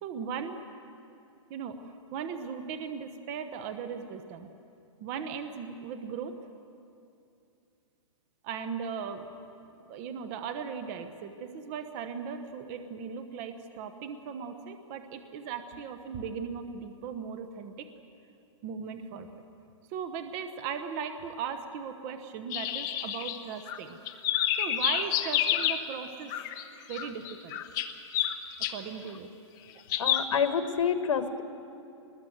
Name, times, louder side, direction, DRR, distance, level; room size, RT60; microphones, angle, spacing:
voice 1, 0.0-0.6 1.5-4.5 5.0-6.3 8.4-9.3 9.9-17.9 18.6-19.4 19.9-24.0 24.6-26.3 26.9-27.6 28.7-29.3 29.7-29.8, right 6 dB, 30° right, 8 dB, 1.1 m, -38 dB
sound 1, 22.5-23.8 24.1-25.8 26.3-26.6 26.9-28.7 29.9-30.3, left 11 dB, 25° left, 1.0 m, -29 dB
voice 2, 30.0-31.4, left 7 dB, 85° left, 8 dB, 1.5 m, -28 dB
23.5 x 21.0 x 7.9 m, 2.6 s
hypercardioid pair, 160°, 16 cm